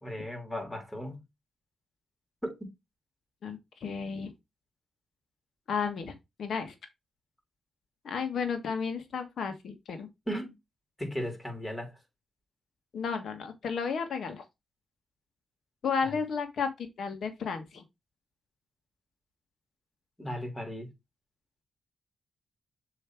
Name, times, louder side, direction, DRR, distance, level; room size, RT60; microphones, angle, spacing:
voice 1, 0.0-1.2 2.4-2.7 10.3-10.5 11.0-11.9 16.0-16.1 20.2-20.9, equal, 15° left, 2.9 m, -36 dB
voice 2, 3.4-4.3 5.7-6.1 6.4-6.7 8.0-10.1 12.9-14.4 15.8-17.8, left 6 dB, 70° left, 1.5 m, -33 dB
6.9 x 3.2 x 4.4 m
cardioid pair, 60°, 0 cm